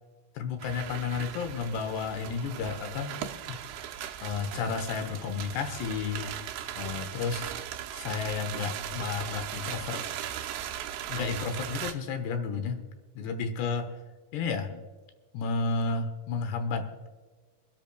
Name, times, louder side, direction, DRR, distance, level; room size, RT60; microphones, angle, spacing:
voice 1, 0.4-3.2 3.5-3.6 4.2-6.3 6.8-7.5 7.9-10.2 11.1-12.8 13.2-13.9 14.3-14.8 15.3-16.9, left 5 dB, 75° left, 8 dB, 2.8 m, -32 dB
sound 1, 0.6-11.9, right 11 dB, 80° right, 2.5 m, -38 dB
24.0 x 12.5 x 2.3 m, 1.4 s
omnidirectional pair, 5.5 m